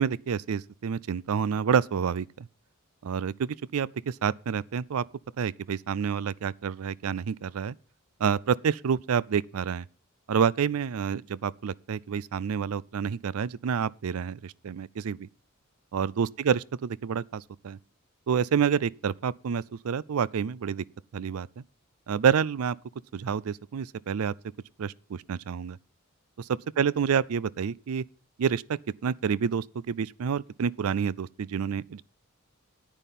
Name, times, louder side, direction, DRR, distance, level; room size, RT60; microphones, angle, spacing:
voice 1, 0.0-2.5 3.0-5.0 5.4-7.7 8.2-9.8 10.3-15.3 15.9-17.8 18.3-20.8 21.1-21.6 22.1-22.8 23.1-24.3 24.8-25.8 26.4-28.0 28.4-32.0, right 7 dB, 80° right, 0.4 m, -28 dB
9.9 x 9.3 x 5.3 m
head